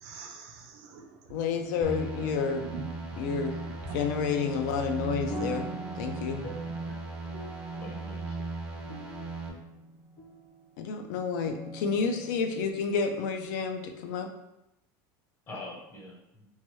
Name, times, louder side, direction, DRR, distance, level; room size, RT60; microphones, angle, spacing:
voice 1, 0.0-1.8 2.2-2.3 2.6-2.9 3.4-4.0, right 5 dB, 60° right, 3 dB, 0.5 m, -45 dB
voice 2, 1.3-2.7 3.2-3.6 3.9-5.7 6.0-6.4 10.8-14.3, left 5 dB, 80° left, 6 dB, 0.4 m, -30 dB
sound 1, 1.8-9.5, right 3 dB, 10° right, 0.4 m, -38 dB
sound 2, 5.1-10.8 11.5-12.6, right 1 dB, 50° left, 0.9 m, -43 dB
voice 3, 6.4-7.0 7.7-8.4 15.5-16.5, left 1 dB, 25° left, -1 dB, 0.7 m, -44 dB
3.0 x 2.2 x 2.9 m, 0.87 s
supercardioid pair, 150°, 10 cm